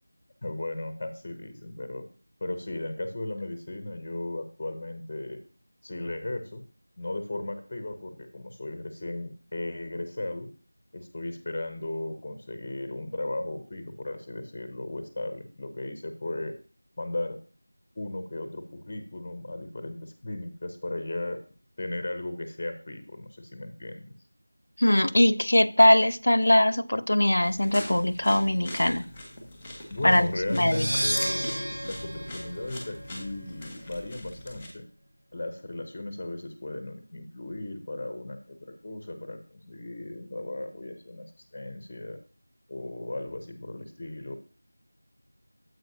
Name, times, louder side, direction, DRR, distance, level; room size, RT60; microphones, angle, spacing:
voice 1, 0.4-2.1 2.4-5.4 5.8-6.6 7.0-10.5 10.9-16.5 17.0-17.4 18.0-21.4 21.8-24.1 29.9-34.8 35.3-42.2 42.7-44.4, left 2 dB, 25° left, 0.6 m, -36 dB
voice 2, 24.8-29.0 30.0-31.1, left 1 dB, 70° left, 0.5 m, -21 dB
sound 1, 27.4-34.7, left 1 dB, ahead, 1.3 m, -42 dB
sound 2, 30.5-33.3, right 1 dB, 65° right, 1.2 m, -32 dB
9.5 x 7.7 x 2.7 m
figure-of-eight pair, 175°, 0 cm